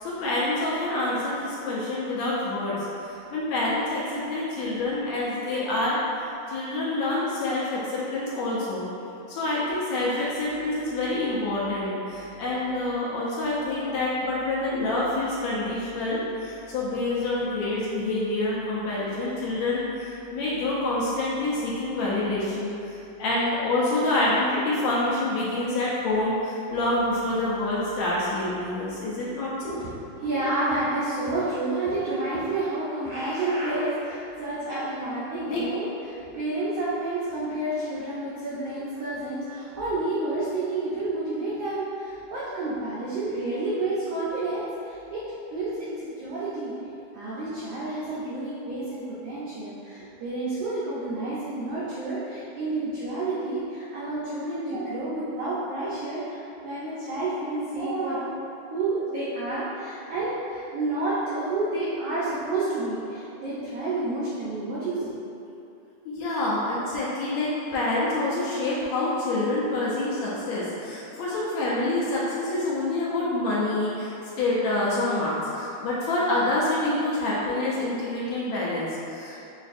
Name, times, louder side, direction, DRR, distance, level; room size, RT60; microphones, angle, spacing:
voice 1, 0.0-2.8 3.0-6.0 6.5-8.9 9.3-29.8 35.5-35.6 66.1-79.4, left 2 dB, 75° left, -7 dB, 1.8 m, -27 dB
voice 2, 29.6-45.2 45.5-46.7 47.1-58.3 58.7-65.1, right 2 dB, 85° right, -9 dB, 1.4 m, -30 dB
6.0 x 2.4 x 2.5 m, 2.7 s
omnidirectional pair, 3.5 m